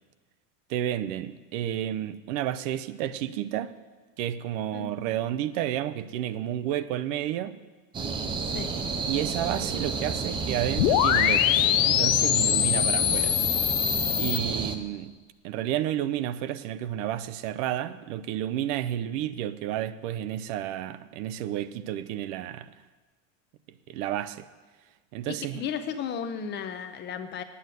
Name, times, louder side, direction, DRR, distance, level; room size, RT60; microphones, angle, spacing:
voice 1, 0.7-3.8 4.2-7.6 9.1-13.4 14.2-15.1 15.4-22.7 23.9-24.5 25.1-25.6, right 11 dB, 70° right, 13 dB, 0.7 m, -31 dB
voice 2, 4.7-5.1 8.5-8.7 25.3-27.4, left 7 dB, 25° left, 8 dB, 0.6 m, -34 dB
sound 1, 7.9-14.8, right 4 dB, 15° right, 0.3 m, -31 dB
sound 2, 10.8-14.4, left 15 dB, 90° left, 0.7 m, -23 dB
8.7 x 8.0 x 9.1 m, 1.3 s
cardioid pair, 165°, 39 cm